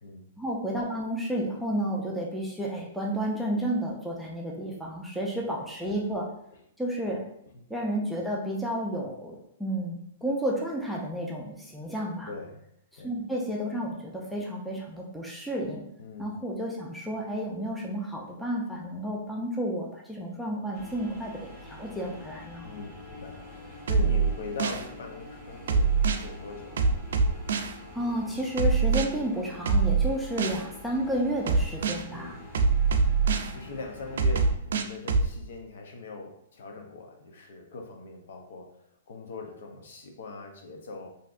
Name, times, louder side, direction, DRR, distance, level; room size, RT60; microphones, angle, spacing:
voice 1, 0.4-6.3 6.8-7.2 7.7-12.3 12.9-15.8 16.2-22.7 27.9-32.4, right 1 dB, ahead, -3 dB, 0.4 m, -31 dB
voice 2, 12.3-12.6 13.0-13.1 16.0-16.3 22.6-27.0 32.1-32.5 33.0-33.1 33.5-41.1, left 3 dB, 70° left, 3 dB, 0.6 m, -42 dB
sound 1, 20.7-34.5, left 1 dB, 35° left, 1.4 m, -46 dB
sound 2, 23.9-24.8 25.7-26.2 26.8-27.7 28.6-29.1 29.7-30.6 31.5-32.0 32.5-33.5 34.2-35.3, right 4 dB, 75° right, 0.3 m, -23 dB
3.3 x 2.7 x 2.5 m, 0.73 s
hypercardioid pair, 160°, 0 cm